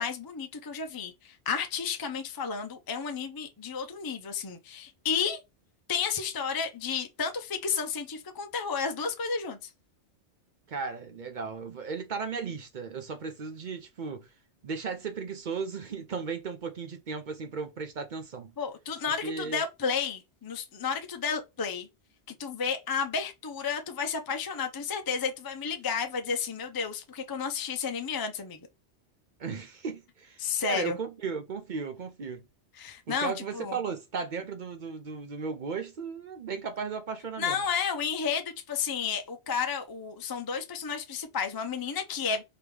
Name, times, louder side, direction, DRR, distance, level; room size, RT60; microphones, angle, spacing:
voice 1, 0.0-5.4 5.9-9.7 18.6-21.9 22.3-28.6 30.4-31.0 32.7-33.8 37.4-42.4, left 6 dB, 40° left, 0.3 m, -32 dB
voice 2, 10.7-14.3 14.6-18.5 19.2-19.6 29.4-32.4 33.1-37.6, right 5 dB, 50° right, 0.7 m, -36 dB
3.4 x 2.9 x 4.7 m
omnidirectional pair, 1.2 m